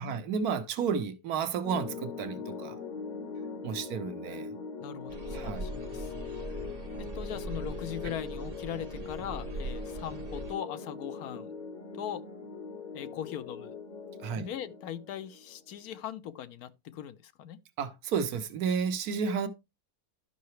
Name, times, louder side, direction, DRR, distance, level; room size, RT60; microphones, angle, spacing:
voice 1, 0.0-2.8 3.6-4.5 5.3-5.7 8.0-8.1 14.2-14.5 17.8-19.5, right 6 dB, 85° right, 1.4 m, -32 dB
sound 1, 1.6-16.0, left 5 dB, 40° left, 0.7 m, -41 dB
voice 2, 4.8-6.4 7.0-11.5 11.9-12.2 12.9-13.8 14.3-17.6, left 10 dB, 85° left, 1.2 m, -40 dB
sound 2, 5.1-10.5, right 2 dB, 45° right, 1.0 m, -41 dB
12.5 x 5.6 x 3.1 m
omnidirectional pair, 1.6 m